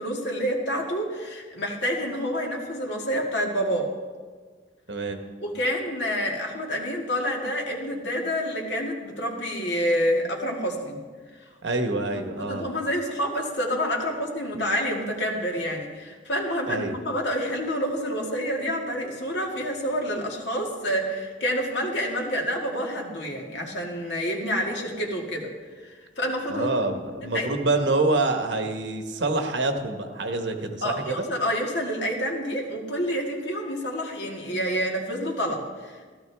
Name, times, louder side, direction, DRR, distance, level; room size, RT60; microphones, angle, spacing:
voice 1, 0.0-3.9 5.4-11.0 11.4-11.5 12.4-26.7 27.2-27.5 30.8-36.1, equal, 75° left, 0 dB, 2.0 m, -28 dB
voice 2, 4.9-5.2 11.6-12.7 16.7-17.0 26.5-31.3, right 2 dB, 75° right, 5 dB, 1.2 m, -26 dB
16.0 x 13.0 x 3.4 m, 1.5 s
head